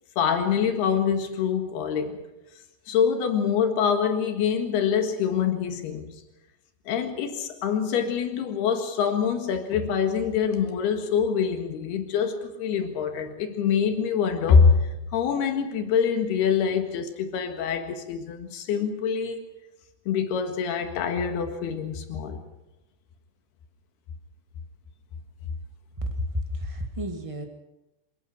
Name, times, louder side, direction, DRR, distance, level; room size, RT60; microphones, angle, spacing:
voice 1, 0.2-2.2 2.9-6.2 6.9-19.4 20.1-22.4, left 6 dB, 90° left, 6 dB, 3.8 m, -25 dB
voice 2, 26.0-27.4, left 1 dB, 60° right, 3 dB, 0.3 m, -31 dB
27.0 x 18.5 x 6.2 m, 0.97 s
omnidirectional pair, 4.5 m